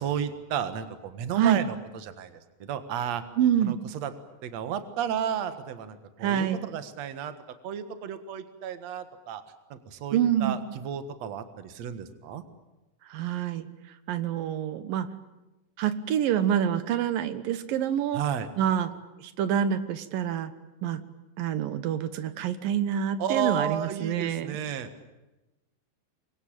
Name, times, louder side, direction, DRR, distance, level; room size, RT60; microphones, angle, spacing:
voice 1, 0.0-1.8 2.0-2.3 2.6-3.2 3.6-4.1 4.4-7.3 7.6-9.4 9.7-12.4 18.1-18.5 23.2-24.9, right 8 dB, 55° right, 10 dB, 2.5 m, -32 dB
voice 2, 3.4-3.8 6.2-6.7 10.1-10.6 13.1-13.7 14.1-15.1 15.8-18.2 18.6-18.9 19.2-20.5 20.8-21.0 21.4-24.6, right 9 dB, 80° right, 12 dB, 2.9 m, -26 dB
26.5 x 23.0 x 8.9 m, 1.0 s
omnidirectional pair, 4.1 m